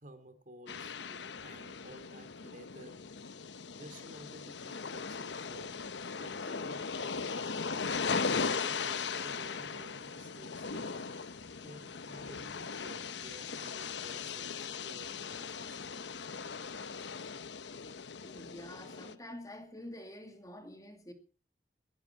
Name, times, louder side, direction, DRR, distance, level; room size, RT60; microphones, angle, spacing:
voice 1, 0.0-0.9 1.4-3.0 3.8-5.8 6.2-7.8 8.2-11.0 11.6-14.6 14.8-15.9, right 1 dB, 50° right, 3.1 m, -53 dB
sound 1, 0.7-19.2, left 5 dB, 85° left, 0.9 m, -38 dB
voice 2, 18.2-21.1, left 1 dB, 20° left, 2.4 m, -48 dB
19.5 x 11.0 x 5.9 m
head